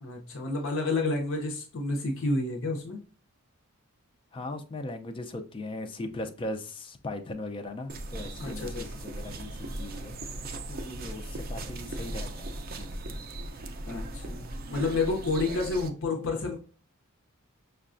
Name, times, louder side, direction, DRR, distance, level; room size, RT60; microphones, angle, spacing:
voice 1, 0.0-3.0 8.4-8.9 10.7-11.1 13.9-16.6, left 3 dB, 60° left, 0.6 m, -30 dB
voice 2, 4.3-10.2 11.0-13.2, left 2 dB, 25° left, 0.4 m, -39 dB
sound 1, 7.9-15.9, right 1 dB, 40° right, 0.4 m, -38 dB
5.4 x 2.2 x 2.5 m
head